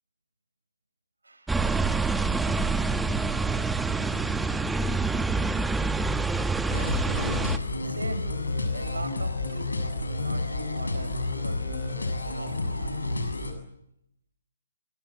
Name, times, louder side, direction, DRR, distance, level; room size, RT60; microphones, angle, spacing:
voice 1, 1.2-1.6 7.4-12.0 12.2-13.3, right 2 dB, 80° right, 10 dB, 7.0 m, -41 dB
sound 1, 1.5-7.6, right 3 dB, 5° right, 1.4 m, -26 dB
sound 2, 6.7-13.5, left 2 dB, 80° left, 7.2 m, -30 dB
27.0 x 25.0 x 7.6 m, 0.78 s
figure-of-eight pair, 135°, 0 cm